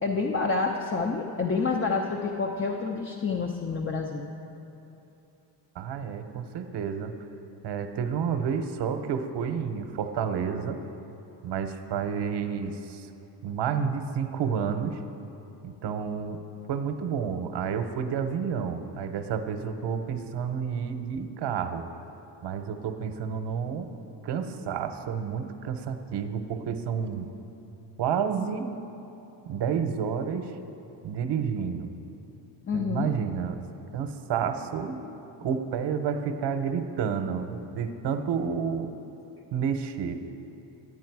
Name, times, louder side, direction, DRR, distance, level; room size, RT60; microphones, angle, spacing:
voice 1, 0.0-4.3 32.7-33.1, left 4 dB, 25° left, 1 dB, 0.7 m, -28 dB
voice 2, 5.7-7.2 7.6-10.8 11.4-13.1 13.4-15.0 15.6-16.4 16.7-21.9 22.4-23.9 24.2-27.3 28.0-28.7 29.4-30.6 31.0-31.9 32.7-33.6 33.9-35.0 35.4-38.9 39.5-40.1, right 7 dB, 60° right, 8 dB, 1.0 m, -30 dB
11.5 x 8.3 x 4.7 m, 3.0 s
supercardioid pair, 85°, 48 cm